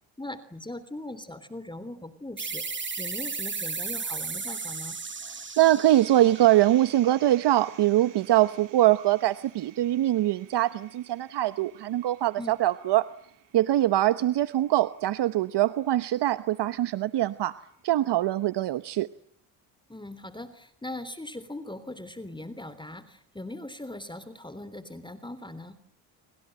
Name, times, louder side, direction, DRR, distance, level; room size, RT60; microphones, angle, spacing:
voice 1, 0.2-2.6 3.0-5.0 12.4-12.6 19.9-25.8, left 1 dB, 10° left, 14 dB, 3.3 m, -40 dB
sound 1, 2.4-7.6, right 4 dB, 25° right, 2.0 m, -35 dB
voice 2, 5.2-13.1 13.5-17.5 17.8-19.1, right 14 dB, 60° right, 13 dB, 1.1 m, -23 dB
sound 2, 5.8-18.0, right 11 dB, 85° right, 7.2 m, -54 dB
29.0 x 25.5 x 7.8 m, 0.73 s
supercardioid pair, 70°, 45 cm